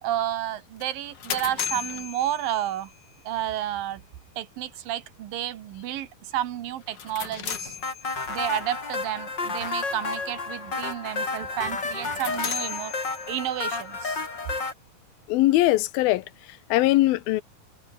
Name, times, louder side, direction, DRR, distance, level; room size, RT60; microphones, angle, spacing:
voice 1, 0.0-2.9 3.2-4.0 4.4-7.8 8.3-12.9 13.3-14.2, right 12 dB, 75° right, 3.0 m, -31 dB
sound 1, 0.8-3.0 6.8-8.5 11.9-13.7, left 7 dB, 45° left, 1.5 m, -35 dB
sound 2, 7.8-14.7, left 3 dB, 30° left, 4.5 m, -31 dB
voice 2, 15.3-16.2 16.7-17.4, left 17 dB, 90° left, 2.7 m, -20 dB
omnidirectional pair, 4.2 m